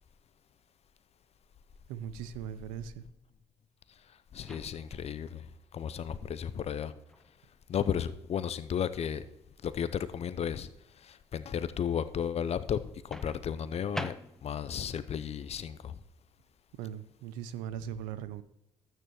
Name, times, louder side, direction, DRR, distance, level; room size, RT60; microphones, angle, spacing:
voice 1, 1.9-3.0 16.8-18.4, right 9 dB, 75° right, 0.5 m, -39 dB
voice 2, 4.3-6.9 7.7-9.3 9.6-10.7 11.0-14.1 14.4-16.0, left 8 dB, 50° left, 0.6 m, -34 dB
Microwave oven, 4.4-5.1 7.1-7.3 13.1-14.7, left 1 dB, 5° left, 0.6 m, -42 dB
12.5 x 9.1 x 3.0 m
hypercardioid pair, 45°, 14 cm